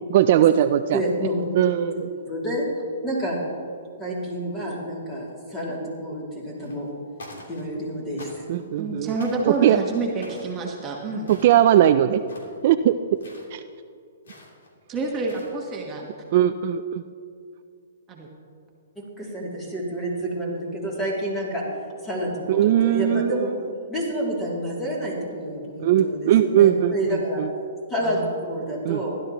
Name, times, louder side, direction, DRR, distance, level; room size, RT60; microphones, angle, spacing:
voice 1, 0.1-1.0 1.5-2.1 8.5-9.2 9.4-9.8 11.3-12.2 12.6-12.9 13.5-13.6 16.3-17.0 22.5-23.5 25.8-26.9 27.4-27.5 28.8-29.0, right 11 dB, 45° right, 9 dB, 0.4 m, -19 dB
voice 2, 0.9-1.4 2.2-2.6 3.0-3.4 4.0-6.9 7.5-8.3 19.0-23.5 23.9-27.4 27.9-29.2, right 1 dB, 10° left, -4 dB, 2.8 m, -29 dB
sound 1, 6.6-6.9 7.2-7.8 8.2-8.7 9.2-9.6 10.2-10.6 11.2-11.8 12.2-12.6 13.2-13.5 14.2-14.7 15.1-15.8, left 1 dB, 85° left, 3.2 m, -45 dB
voice 3, 8.8-11.3 14.9-16.1 18.1-18.3 28.0-28.4, right 3 dB, 20° right, -1 dB, 1.3 m, -28 dB
16.0 x 12.0 x 3.0 m, 2.3 s
hypercardioid pair, 155°, 0 cm